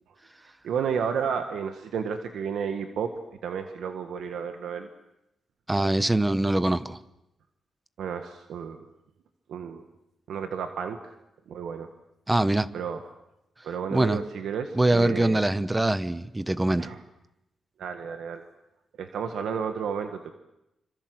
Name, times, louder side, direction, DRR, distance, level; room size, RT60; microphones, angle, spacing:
voice 1, 0.6-4.9 8.0-8.8 9.5-9.8 10.3-11.1 11.5-11.9 12.7-13.0 13.6-15.4 16.8-17.0 17.8-18.5 19.0-20.3, right 7 dB, 80° right, 7 dB, 1.7 m, -32 dB
voice 2, 5.7-7.0 12.3-12.7 13.9-14.2 14.7-16.9, right 1 dB, 10° right, 14 dB, 1.1 m, -23 dB
27.0 x 25.5 x 7.9 m, 0.88 s
cardioid pair, 115°, 0 cm